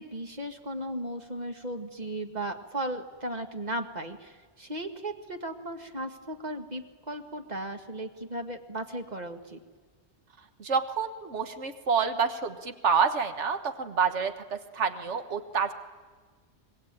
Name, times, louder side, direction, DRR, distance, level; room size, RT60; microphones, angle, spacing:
voice 1, 0.0-9.6, right 1 dB, 40° right, 6 dB, 2.0 m, -36 dB
voice 2, 10.6-15.7, right 6 dB, 90° right, 8 dB, 1.6 m, -28 dB
26.0 x 21.0 x 9.0 m, 1.5 s
omnidirectional pair, 1.2 m